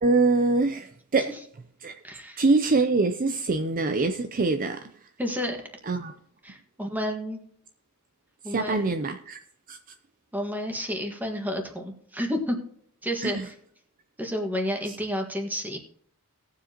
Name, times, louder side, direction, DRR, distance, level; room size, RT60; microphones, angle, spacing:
voice 1, 0.0-1.3 1.8-2.0 2.4-5.1 5.8-6.1 8.4-9.4 9.7-9.8 13.2-13.5 14.8-15.0, right 3 dB, 40° right, 0.5 m, -24 dB
voice 2, 2.0-2.4 5.2-5.6 6.4-7.4 8.4-8.9 10.3-12.6 13.0-13.4 14.2-15.8, equal, 10° right, 1.6 m, -30 dB
19.5 x 7.5 x 2.9 m
head